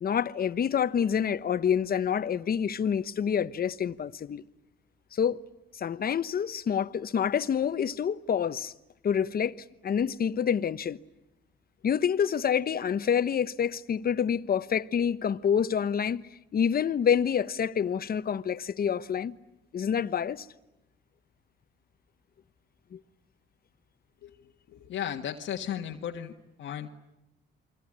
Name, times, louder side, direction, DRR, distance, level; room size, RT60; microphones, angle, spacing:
voice 1, 0.0-4.4 5.1-5.4 5.8-8.7 9.0-9.6 9.8-11.0 11.8-16.2 16.5-19.4 19.7-20.5 22.9-23.0, left 8 dB, 50° left, 1.1 m, -27 dB
voice 2, 24.7-26.3 26.6-26.9, left 10 dB, 75° left, 1.6 m, -35 dB
29.5 x 23.0 x 8.7 m
cardioid pair, 90°, 20 cm